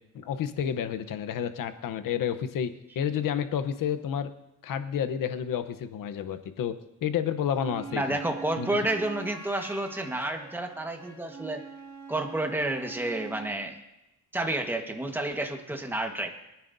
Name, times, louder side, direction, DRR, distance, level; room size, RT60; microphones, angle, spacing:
voice 1, 0.1-4.3 4.6-6.7 7.0-8.2 8.6-8.7, left 8 dB, 85° left, 11 dB, 0.9 m, -30 dB
Wind instrument woodwind instrument, 7.5-13.6, right 5 dB, 70° right, 4.2 m, -43 dB
voice 2, 7.9-11.6 12.1-13.8 14.3-16.3, right 2 dB, 5° right, 3 dB, 1.4 m, -30 dB
23.5 x 10.0 x 2.7 m, 0.90 s
cardioid pair, 105°, 32 cm